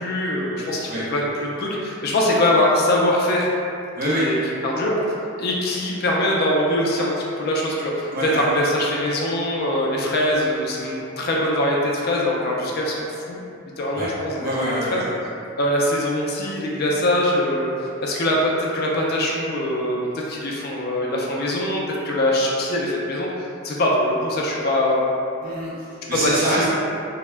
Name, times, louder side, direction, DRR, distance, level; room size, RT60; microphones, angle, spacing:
voice 1, 0.0-3.5 4.1-4.4 4.6-5.0 5.4-13.4 13.8-15.1 15.6-23.3 23.6-25.0 26.1-26.7, left 1 dB, 45° left, -3 dB, 0.3 m, -22 dB
voice 2, 4.0-4.3 8.1-8.5 13.9-14.1 14.4-15.1 25.4-26.7, right 1 dB, 40° right, -8 dB, 0.6 m, -25 dB
2.2 x 2.0 x 3.2 m, 2.6 s
head